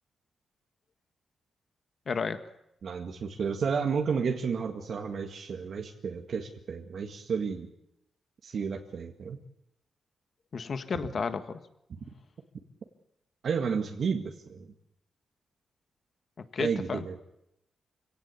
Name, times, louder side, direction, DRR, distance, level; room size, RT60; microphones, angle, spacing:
voice 1, 2.1-2.4 10.5-11.6 16.4-17.0, left 5 dB, 50° left, 10 dB, 1.6 m, -32 dB
voice 2, 2.8-7.7 8.4-9.4 13.4-14.7 16.6-17.2, right 6 dB, 60° right, 3 dB, 2.0 m, -31 dB
26.5 x 17.5 x 8.5 m, 0.83 s
wide cardioid pair, 120°, 0 cm